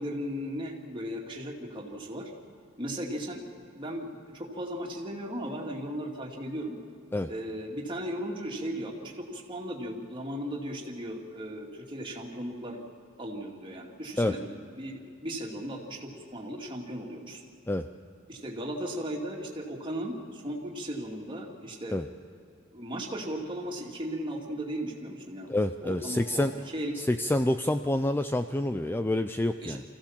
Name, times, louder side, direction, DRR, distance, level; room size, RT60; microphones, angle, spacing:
voice 1, 0.0-2.3 2.8-6.7 7.3-12.8 13.2-17.5 18.3-21.9 22.7-25.5 25.8-27.0 29.6-29.8, equal, 25° right, -1 dB, 2.5 m, -36 dB
voice 2, 25.5-26.5 27.0-29.8, left 1 dB, 10° left, 9 dB, 0.4 m, -27 dB
25.0 x 15.5 x 7.3 m, 2.4 s
head